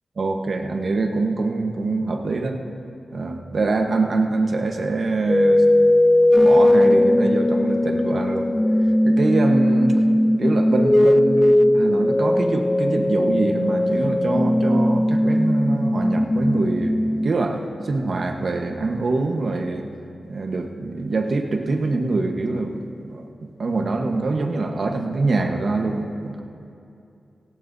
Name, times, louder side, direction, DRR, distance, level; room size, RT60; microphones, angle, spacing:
voice 1, 0.2-2.6 3.1-5.7 6.4-8.5 9.0-9.9 10.4-17.0 17.2-19.9 20.2-26.4, right 3 dB, 60° right, 3 dB, 1.2 m, -24 dB
sound 1, 5.3-17.3, left 1 dB, 15° left, 0.3 m, -18 dB
18.5 x 17.5 x 2.7 m, 2.7 s
wide cardioid pair, 90°, 0 cm